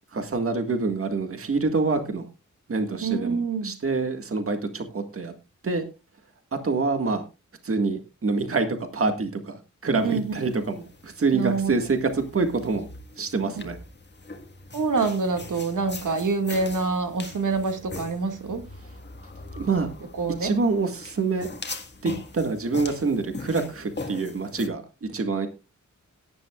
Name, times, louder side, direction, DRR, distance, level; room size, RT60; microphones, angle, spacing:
voice 1, 0.1-2.3 2.7-5.3 5.6-5.9 6.6-7.2 7.6-8.7 8.9-12.9 13.2-13.8 19.6-19.9 20.4-21.5 22.0-25.5, right 4 dB, 45° right, 6 dB, 1.8 m, -26 dB
voice 2, 3.0-3.8 10.0-10.4 11.3-11.7 13.3-13.6 14.7-18.7 20.1-20.5, right 4 dB, 80° right, 6 dB, 2.0 m, -26 dB
sound 1, 10.0-24.7, left 3 dB, 35° left, 1.7 m, -41 dB
17.5 x 10.5 x 2.4 m, 0.26 s
wide cardioid pair, 155°, 31 cm